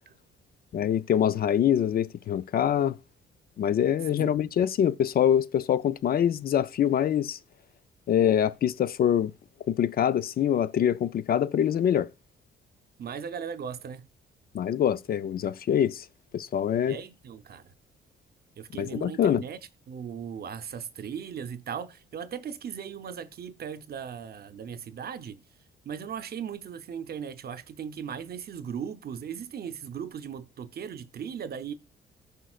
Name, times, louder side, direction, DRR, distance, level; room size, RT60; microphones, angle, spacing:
voice 1, 0.7-3.0 3.6-7.4 8.1-9.3 9.7-12.1 14.5-16.1 16.3-17.0 18.8-19.4, left 9 dB, 50° left, 0.4 m, -24 dB
voice 2, 13.0-14.1 16.9-17.7 18.6-25.4 25.8-31.7, right 7 dB, 50° right, 0.7 m, -38 dB
14.0 x 5.2 x 2.4 m
cardioid pair, 90°, 20 cm